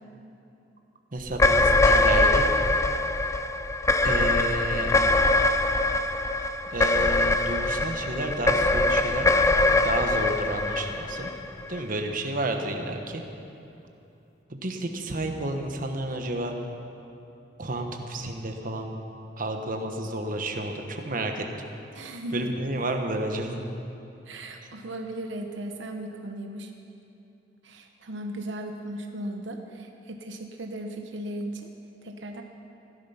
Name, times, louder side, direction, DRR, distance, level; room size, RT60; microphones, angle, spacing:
voice 1, 1.1-2.5 4.0-4.9 6.7-9.3 9.8-11.3 11.7-13.2 14.5-16.5 17.6-18.9 19.4-21.4 22.0-23.6, right 1 dB, 50° right, 4 dB, 1.2 m, -31 dB
sound 1, 1.3-11.8, left 2 dB, 15° left, 0.4 m, -23 dB
voice 2, 21.9-22.5 24.2-26.7 27.6-31.7 32.0-32.4, right 1 dB, 75° right, 3 dB, 1.0 m, -36 dB
14.5 x 13.0 x 5.7 m, 2.9 s
head